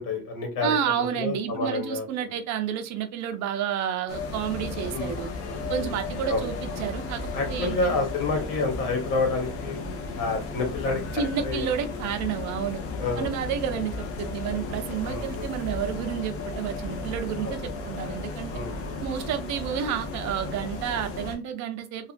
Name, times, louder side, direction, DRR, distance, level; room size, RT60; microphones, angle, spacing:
voice 1, 0.0-2.3 4.9-5.9 6.3-6.4 7.3-9.8 10.1-11.7 13.0-13.3 15.0-15.5 17.4-17.6 18.5-19.0, left 3 dB, 80° left, 1.3 m, -29 dB
voice 2, 0.6-5.3 5.7-7.2 7.5-8.0 11.1-12.8 13.2-18.5 19.0-22.1, right 9 dB, 60° right, 0.5 m, -30 dB
sound 1, 4.1-21.3, left 3 dB, 45° left, 0.5 m, -34 dB
2.8 x 2.4 x 2.4 m
cardioid pair, 170°, 32 cm